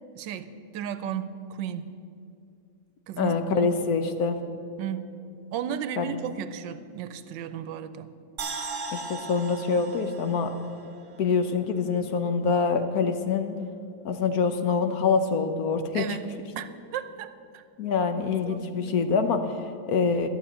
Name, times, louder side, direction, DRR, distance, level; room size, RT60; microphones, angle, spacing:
voice 1, 0.1-0.5 0.7-1.9 3.1-3.7 4.8-5.1 5.5-8.1 15.9-16.3 16.6-17.6 18.2-18.8, right 9 dB, 85° right, 12 dB, 1.3 m, -34 dB
voice 2, 3.2-4.4 6.0-6.1 8.9-10.5 11.2-13.6 14.0-16.0 17.8-20.3, left 5 dB, 65° left, 8 dB, 1.1 m, -25 dB
sound 1, 8.4-11.6 11.9-12.0, right 3 dB, 45° right, 1.6 m, -38 dB
12.0 x 7.4 x 8.8 m, 2.4 s
omnidirectional pair, 2.0 m